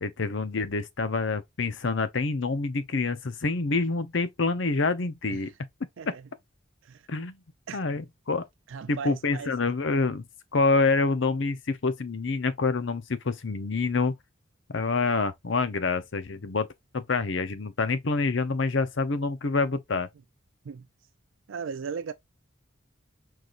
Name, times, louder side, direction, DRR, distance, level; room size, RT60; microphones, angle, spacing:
voice 1, 0.0-5.5 7.1-7.4 7.7-8.4 8.9-10.2 10.5-14.1 14.7-16.7 16.9-20.1, left 3 dB, 65° left, 0.7 m, -27 dB
voice 2, 8.7-9.5 20.6-20.9 21.5-22.1, right 6 dB, 70° right, 0.4 m, -37 dB
4.8 x 4.0 x 2.4 m
head